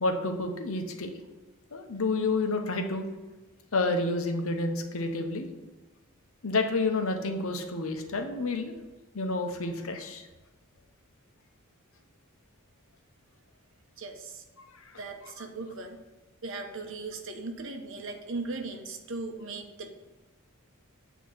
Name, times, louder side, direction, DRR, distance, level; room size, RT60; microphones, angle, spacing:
voice 1, 0.0-1.1 1.7-3.1 3.7-5.5 6.4-8.7 9.1-10.3 14.7-14.9 15.2-15.3, left 3 dB, 70° left, 5 dB, 0.9 m, -29 dB
voice 2, 14.0-14.4 15.0-16.0 16.4-19.9, right 3 dB, 60° right, 5 dB, 0.9 m, -38 dB
8.3 x 3.0 x 6.1 m, 1.2 s
head